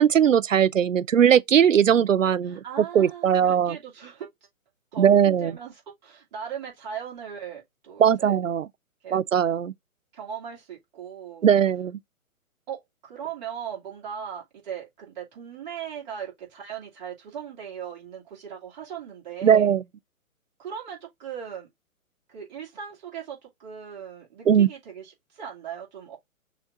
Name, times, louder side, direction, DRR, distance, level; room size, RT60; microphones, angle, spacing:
voice 1, 0.0-2.6 2.9-3.8 5.0-5.5 8.0-8.7 9.1-9.7 11.4-12.0 19.4-19.8 24.5-24.7, right 8 dB, 65° right, 0.6 m, -19 dB
voice 2, 2.4-4.3 4.9-8.4 9.0-9.2 10.1-11.4 12.7-19.7 20.6-21.7 22.3-26.2, right 8 dB, 30° right, 2.6 m, -38 dB
6.2 x 2.9 x 2.6 m
figure-of-eight pair, 135°, 42 cm